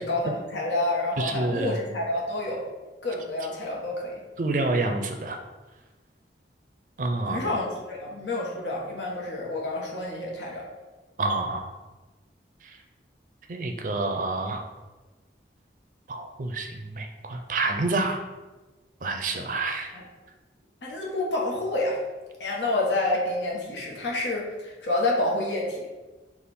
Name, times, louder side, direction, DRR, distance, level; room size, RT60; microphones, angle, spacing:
voice 1, 0.0-2.6 3.0-4.2 7.2-10.7 19.9-20.0 20.8-22.0 22.4-25.9, left 2 dB, 90° left, -3 dB, 1.1 m, -28 dB
voice 2, 1.2-1.7 4.4-5.4 7.0-7.4 11.2-11.7 13.5-14.6 16.1-18.2 19.0-19.9, right 2 dB, 45° right, 5 dB, 0.4 m, -28 dB
5.1 x 2.5 x 4.1 m, 1.2 s
head